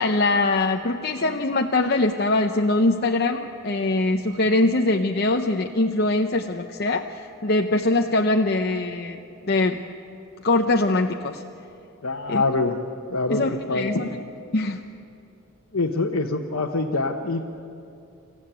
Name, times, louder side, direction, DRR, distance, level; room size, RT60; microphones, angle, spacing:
voice 1, 0.0-9.2 9.4-9.8 10.4-11.4 12.3-12.4 13.3-14.1 14.5-14.8, left 2 dB, 45° left, 3 dB, 0.7 m, -22 dB
voice 2, 12.0-12.8 13.1-13.4 13.7-14.0 15.7-17.4, left 3 dB, 75° left, -1 dB, 1.2 m, -24 dB
27.0 x 15.5 x 9.0 m, 2.7 s
head